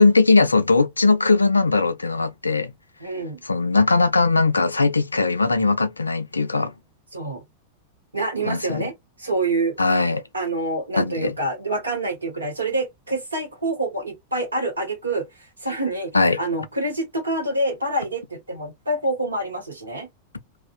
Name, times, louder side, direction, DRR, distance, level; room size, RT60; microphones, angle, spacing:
voice 1, 0.0-2.7 3.4-6.7 8.4-8.9 9.8-10.2 11.0-11.4 16.1-16.4, left 3 dB, 80° left, 0.3 m, -19 dB
voice 2, 3.0-3.4 7.1-7.4 8.1-8.9 9.2-9.8 10.3-15.3 15.6-16.1 16.4-20.1, right 2 dB, 80° right, 1.0 m, -26 dB
2.5 x 2.3 x 2.4 m
figure-of-eight pair, 90°, 0 cm